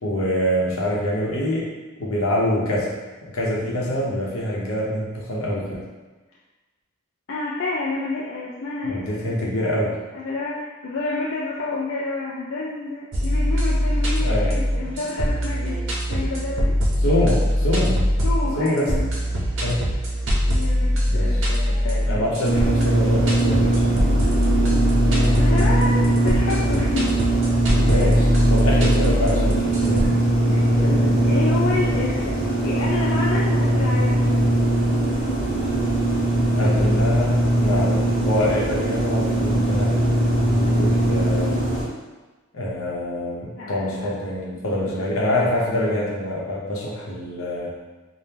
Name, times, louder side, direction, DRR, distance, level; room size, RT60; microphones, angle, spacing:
voice 1, 0.0-1.7 2.0-2.9 3.3-5.8 8.8-10.0 14.2-14.6 17.0-18.1 18.6-19.1 19.6-19.9 21.1-21.5 22.1-24.0 27.9-30.2 36.5-40.0 40.5-41.6 42.5-47.7, left 1 dB, 80° left, -4 dB, 0.7 m, -25 dB
voice 2, 7.3-9.8 10.1-15.8 16.1-16.8 18.2-19.1 20.5-22.2 25.1-27.2 30.4-32.3 32.6-34.3 43.6-44.1 44.6-45.1, left 3 dB, 55° left, -5 dB, 0.3 m, -29 dB
sound 1, 13.1-30.1, equal, 65° right, 0.5 m, -22 dB
sound 2, 22.4-41.8, right 1 dB, 20° right, 1.4 m, -20 dB
sound 3, 30.8-34.2, left 3 dB, 10° left, 0.7 m, -37 dB
3.5 x 2.0 x 2.8 m, 1.2 s
head